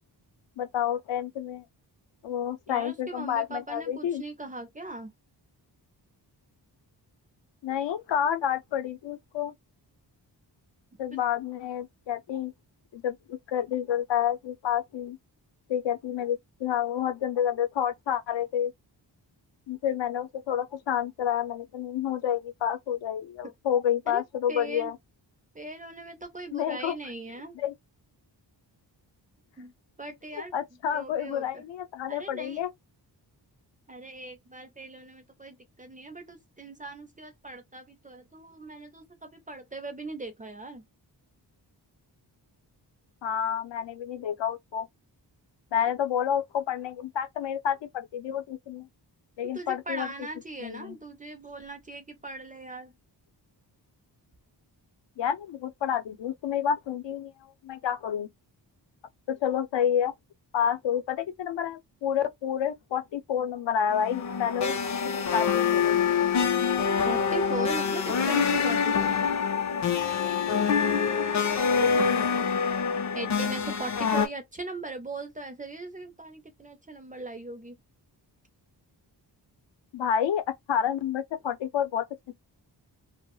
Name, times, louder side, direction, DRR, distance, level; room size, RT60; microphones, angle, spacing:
voice 1, 0.6-1.6 2.2-4.2 7.6-9.5 11.0-12.5 12.9-15.2 15.7-18.7 19.7-25.0 26.5-27.0 27.5-27.7 30.3-32.7 43.2-44.9 45.7-48.9 49.4-50.1 50.6-51.0 55.2-57.3 57.6-58.3 59.3-60.1 60.5-64.7 65.1-66.0 71.8-72.5 79.9-82.3, left 9 dB, 85° left, 0.6 m, -29 dB
voice 2, 2.7-5.1 24.1-24.2 24.5-24.9 25.5-27.5 29.6-29.7 30.0-30.5 30.9-31.6 32.1-32.6 33.9-40.8 49.5-52.9 67.0-69.1 73.1-77.8, right 2 dB, 20° right, 0.4 m, -39 dB
sound 1, 63.9-74.3, left 6 dB, 45° left, 0.4 m, -25 dB
2.3 x 2.0 x 2.9 m
wide cardioid pair, 175°, 43 cm